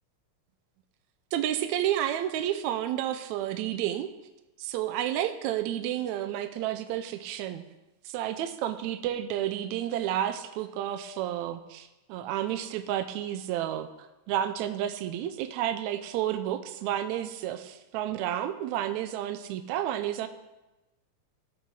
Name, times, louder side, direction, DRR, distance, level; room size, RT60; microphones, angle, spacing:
voice 1, 1.3-4.1 4.6-7.6 8.1-20.3, right 11 dB, 85° right, 9 dB, 1.9 m, -31 dB
14.0 x 7.0 x 6.1 m, 1.1 s
omnidirectional pair, 3.3 m